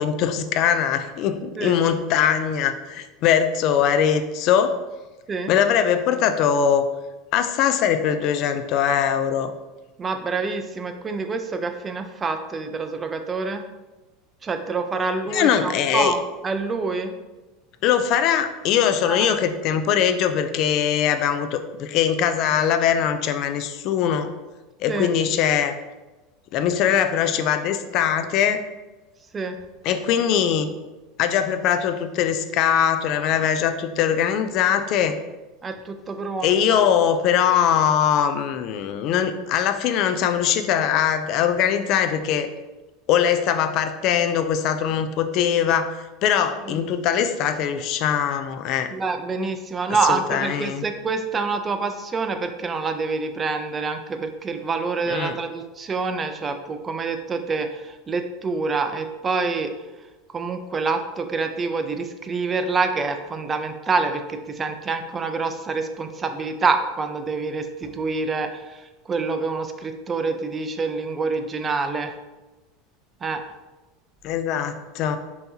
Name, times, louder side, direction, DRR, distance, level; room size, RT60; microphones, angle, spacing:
voice 1, 0.0-4.8 5.5-6.9 7.3-9.5 15.3-16.1 17.8-24.3 24.8-25.8 26.5-28.6 29.8-30.7 31.2-35.2 36.4-42.5 43.1-48.9 50.0-50.8 55.1-55.4 74.2-75.2, left 8 dB, 55° left, 9 dB, 0.4 m, -21 dB
voice 2, 10.0-13.6 14.4-17.1 19.0-19.3 24.9-25.1 29.3-29.6 35.6-36.9 46.7-46.8 48.9-59.7 60.3-72.2 73.2-73.4, right 4 dB, 25° right, 7 dB, 0.4 m, -26 dB
5.6 x 2.8 x 2.7 m, 1.1 s
supercardioid pair, 120°, 0 cm